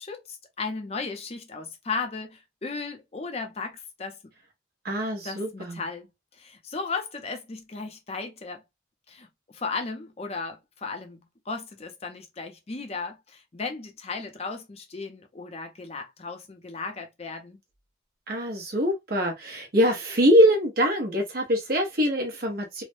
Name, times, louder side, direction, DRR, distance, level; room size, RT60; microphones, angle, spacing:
voice 1, 0.0-4.2 5.2-6.1 6.3-8.6 9.1-17.6, left 4 dB, 30° left, 0.5 m, -35 dB
voice 2, 4.8-5.8 18.3-22.8, equal, 50° right, 0.8 m, -23 dB
3.2 x 2.1 x 2.6 m
head